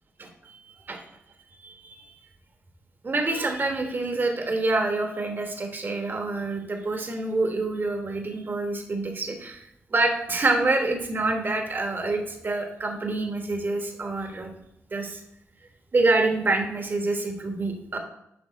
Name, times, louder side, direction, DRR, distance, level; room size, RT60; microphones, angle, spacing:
voice 1, 0.2-0.6 0.9-1.0 1.6-2.2 3.0-14.5 14.9-15.2 15.9-18.0, right 2 dB, 40° right, 3 dB, 1.3 m, -27 dB
8.1 x 5.4 x 4.1 m, 0.78 s
cardioid pair, 75°, 5 cm